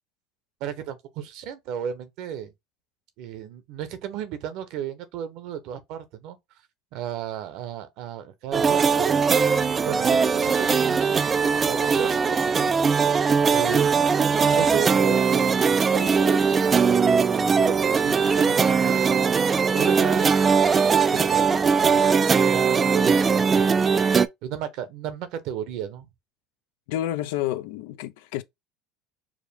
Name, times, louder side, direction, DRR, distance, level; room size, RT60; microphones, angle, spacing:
voice 1, 0.6-2.5 3.2-6.4 6.9-9.2 9.9-11.4 11.7-12.8 13.5-14.0 14.5-15.5 15.8-19.1 19.7-20.8 21.1-23.8 24.4-26.1, right 9 dB, 65° right, 0.9 m, -34 dB
sound 1, 8.5-24.3, right 5 dB, 25° right, 0.3 m, -20 dB
voice 2, 26.9-28.4, left 13 dB, 80° left, 0.5 m, -29 dB
4.8 x 2.2 x 3.4 m
supercardioid pair, 110°, 0 cm